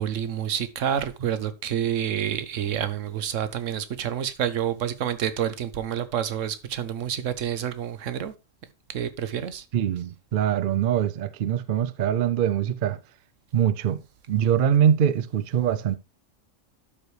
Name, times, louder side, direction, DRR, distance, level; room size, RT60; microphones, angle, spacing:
voice 1, 0.0-8.3 8.9-9.6, right 9 dB, 75° right, 1.2 m, -28 dB
voice 2, 9.7-13.0 13.5-14.0 14.3-16.0, right 9 dB, 60° right, 0.6 m, -23 dB
12.0 x 5.0 x 3.2 m
omnidirectional pair, 1.3 m